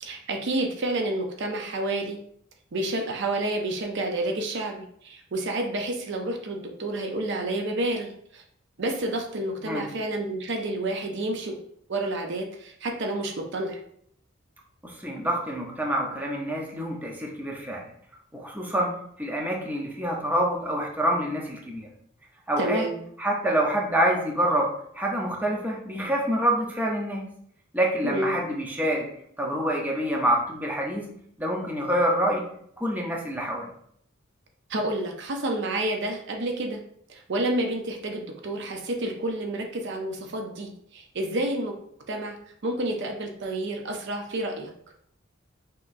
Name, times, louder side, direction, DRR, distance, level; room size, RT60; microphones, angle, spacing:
voice 1, 0.0-2.2 2.7-8.4 8.8-11.6 11.9-13.8 22.6-23.0 28.0-28.4 34.7-36.8 37.1-41.8 42.1-42.3 42.6-44.7, right 1 dB, 60° right, 3 dB, 0.6 m, -29 dB
voice 2, 14.8-17.9 18.3-21.9 22.5-22.9 23.2-24.7 24.9-27.2 27.7-29.1 29.4-31.1 31.4-32.5 32.8-33.7, right 1 dB, 10° right, -1 dB, 0.7 m, -26 dB
6.1 x 2.9 x 2.6 m, 0.66 s
head